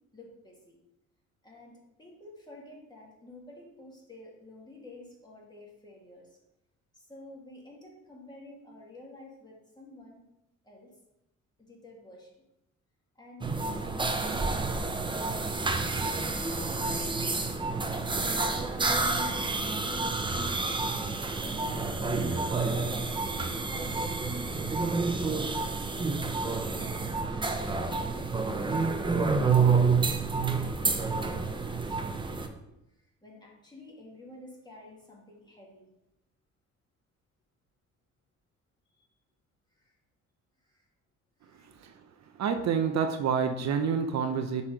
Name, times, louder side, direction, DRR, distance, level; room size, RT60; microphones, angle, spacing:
voice 1, 0.1-0.8 1.4-6.4 6.9-10.2 10.6-10.9 11.6-12.4 13.2-14.9 15.3-16.2 16.6-18.8 19.2-20.8 21.4-22.3 22.7-24.4 25.0-26.4 27.1-32.4 33.0-35.9 38.9-39.1 39.8-39.9 40.6-40.8 41.4-41.8 42.6-42.7, left 1 dB, 15° left, -3 dB, 2.2 m, -50 dB
sound 1, 13.4-32.5, right 4 dB, 15° right, 0.7 m, -29 dB
voice 2, 42.4-44.6, right 6 dB, 60° right, 7 dB, 0.7 m, -28 dB
5.9 x 4.1 x 4.9 m, 0.88 s
cardioid pair, 90°, 30 cm